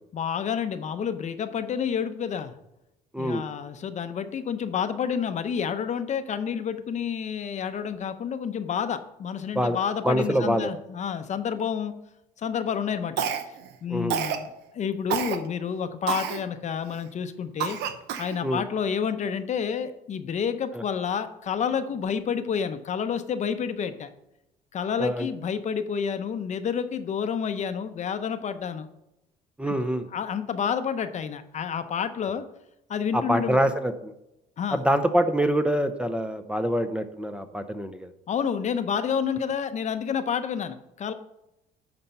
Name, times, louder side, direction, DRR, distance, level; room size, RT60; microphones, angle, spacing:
voice 1, 0.1-2.5 3.2-11.9 12.4-13.3 13.8-17.8 18.2-24.1 24.7-28.9 30.1-32.4 32.9-33.6 34.6-34.8 38.3-41.1, left 7 dB, 45° left, 10 dB, 0.7 m, -29 dB
voice 2, 10.0-10.7 13.9-14.2 18.4-18.6 20.7-20.8 25.0-25.3 29.6-30.1 33.1-34.1 34.7-38.1, right 1 dB, 5° right, 9 dB, 0.6 m, -25 dB
Cough, 13.2-13.7 14.1-14.5 15.1-15.4 16.1-16.4 16.9-17.0 17.6-18.4, right 8 dB, 80° right, 0.8 m, -28 dB
10.0 x 4.4 x 5.5 m, 0.86 s
cardioid pair, 110°, 17 cm